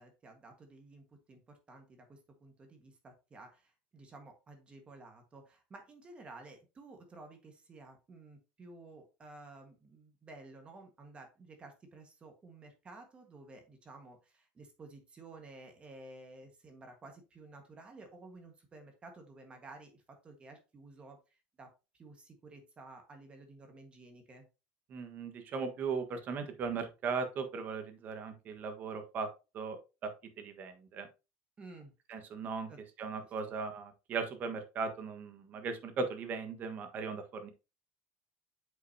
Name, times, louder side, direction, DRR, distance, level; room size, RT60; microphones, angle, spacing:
voice 1, 0.0-21.2 21.6-24.5 31.6-31.9 32.7-32.8 33.2-33.3, right 2 dB, 25° right, 5 dB, 1.5 m, -53 dB
voice 2, 24.9-29.3 29.5-30.1 30.4-31.1 32.1-32.7 33.0-37.5, right 5 dB, 40° right, 6 dB, 1.4 m, -38 dB
7.8 x 5.5 x 2.8 m, 0.29 s
cardioid pair, 135°, 5 cm